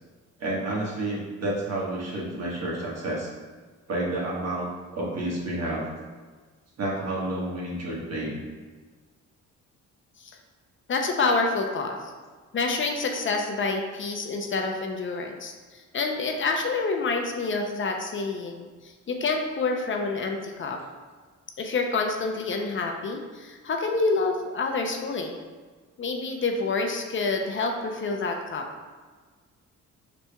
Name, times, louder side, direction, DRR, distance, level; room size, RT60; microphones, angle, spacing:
voice 1, 0.4-3.3 3.9-5.9 6.8-8.4, right 1 dB, 55° right, -4 dB, 1.3 m, -30 dB
voice 2, 10.9-12.1 12.5-20.8 21.6-25.4 26.0-28.7, left 3 dB, 40° left, 3 dB, 0.5 m, -28 dB
5.0 x 4.4 x 2.2 m, 1.4 s
cardioid pair, 90°, 30 cm